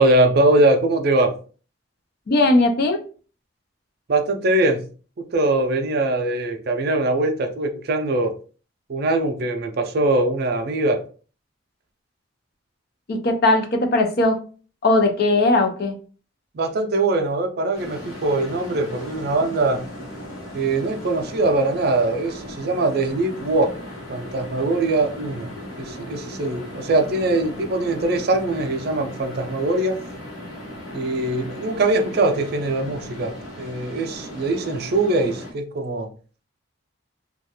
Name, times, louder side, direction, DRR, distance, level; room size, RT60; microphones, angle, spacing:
voice 1, 0.0-1.4 4.1-4.9 5.2-8.3 8.9-11.0 16.5-19.9 20.5-23.7 24.1-25.5 25.8-30.0 30.9-36.1, right 2 dB, 50° right, 0.4 m, -22 dB
voice 2, 2.3-3.0 13.1-14.4 14.8-16.0, left 2 dB, 50° left, 0.4 m, -18 dB
sound 1, 17.7-35.5, equal, 90° left, 1.0 m, -37 dB
2.4 x 2.2 x 2.8 m
head